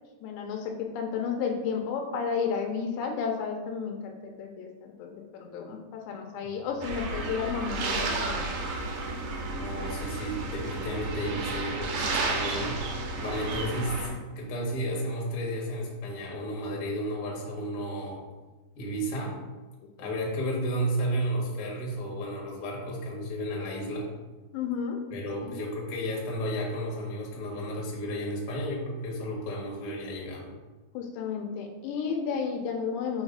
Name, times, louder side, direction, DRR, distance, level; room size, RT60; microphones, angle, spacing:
voice 1, 0.2-8.5 19.8-20.1 24.5-25.0 25.4-25.6 30.9-33.2, left 6 dB, 85° left, 2 dB, 2.8 m, -32 dB
voice 2, 6.5-6.8 9.5-18.2 18.7-19.4 20.0-24.1 25.1-30.5, equal, 65° left, -3 dB, 1.4 m, -33 dB
sound 1, 6.8-14.1, right 3 dB, 75° right, 3.1 m, -32 dB
8.0 x 3.1 x 5.1 m, 1.2 s
omnidirectional pair, 5.2 m